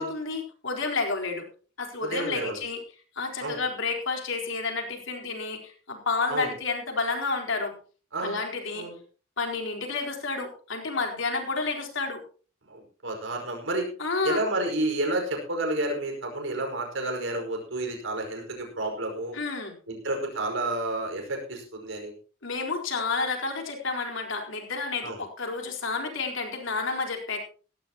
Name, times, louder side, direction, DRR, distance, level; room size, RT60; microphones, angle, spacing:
voice 1, 0.0-1.5 1.8-2.8 3.2-7.8 8.2-8.9 9.4-12.2 14.0-14.4 19.3-19.7 22.4-27.4, left 4 dB, 70° left, 2 dB, 4.2 m, -30 dB
voice 2, 2.0-2.6 3.4-3.6 6.3-6.5 8.1-8.4 8.8-9.0 12.7-13.9 14.2-19.4 19.9-22.1 25.0-25.2, right 2 dB, 70° right, 2 dB, 5.3 m, -30 dB
17.5 x 15.0 x 3.0 m, 0.39 s
head